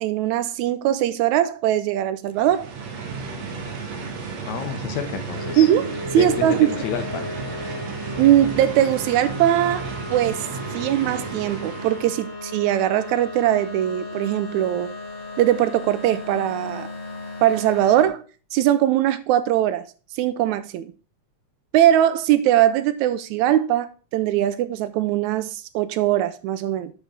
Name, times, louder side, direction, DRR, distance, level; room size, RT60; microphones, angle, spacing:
voice 1, 0.0-2.7 5.6-5.9 6.1-6.7 8.2-10.5 10.7-14.9 15.4-16.9 17.4-18.2 18.5-19.9 20.2-20.9 21.7-23.9 24.1-26.9, right 12 dB, 80° right, 1.8 m, -20 dB
sound 1, 2.3-12.3, right 4 dB, 65° right, 2.3 m, -33 dB
voice 2, 4.5-5.7 6.2-7.3, left 7 dB, 70° left, 2.1 m, -30 dB
sound 2, 5.4-18.1, left 2 dB, 40° left, 1.2 m, -36 dB
7.5 x 5.8 x 4.0 m
omnidirectional pair, 3.5 m